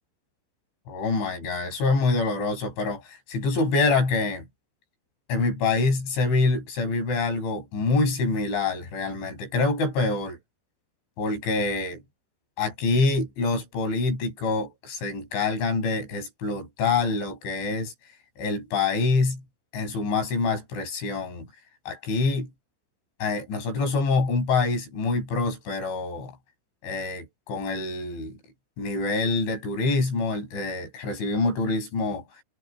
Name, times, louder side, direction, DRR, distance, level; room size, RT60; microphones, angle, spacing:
voice 1, 0.9-4.5 5.3-10.4 11.2-12.0 12.6-17.9 18.4-19.4 19.7-21.5 21.9-22.5 23.2-26.3 26.8-28.4 28.8-32.2, left 3 dB, 90° left, 9.5 m, -26 dB
omnidirectional pair, 5.2 m